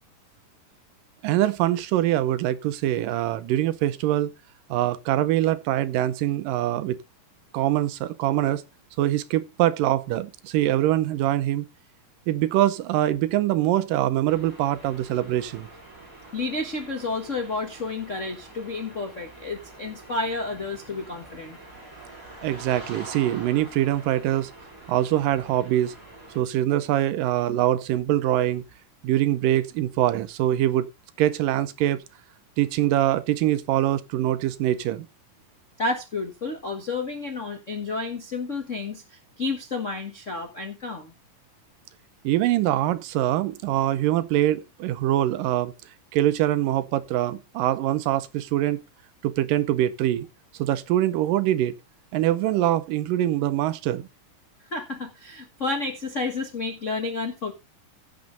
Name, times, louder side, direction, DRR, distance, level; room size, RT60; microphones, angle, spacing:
voice 1, 1.2-4.3 4.7-7.0 7.5-8.6 9.0-11.7 12.3-15.7 22.4-24.5 24.9-25.9 26.4-28.6 29.0-30.9 31.2-32.0 32.6-35.1 42.2-45.7 46.1-48.8 49.2-50.3 50.6-51.7 52.1-54.1, right 13 dB, 80° right, 2.4 m, -23 dB
sound 1, 14.3-26.4, right 2 dB, 25° right, 5.4 m, -45 dB
voice 2, 16.3-21.6 35.8-41.1 54.7-57.5, left 3 dB, 60° left, 0.7 m, -31 dB
16.0 x 6.4 x 3.9 m
omnidirectional pair, 3.9 m